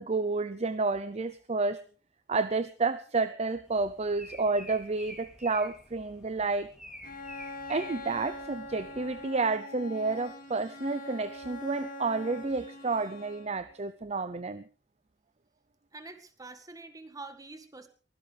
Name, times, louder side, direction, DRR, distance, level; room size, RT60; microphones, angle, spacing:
voice 1, 0.0-1.8 2.3-6.7 7.7-14.6, right 3 dB, 35° right, 14 dB, 0.7 m, -30 dB
sound 1, 3.6-9.3, left 1 dB, 5° right, 3.0 m, -49 dB
Bowed string instrument, 7.0-13.7, left 1 dB, 50° left, 3.1 m, -43 dB
voice 2, 15.9-17.9, right 3 dB, 20° right, 9 dB, 2.0 m, -46 dB
23.0 x 16.5 x 3.5 m, 0.38 s
head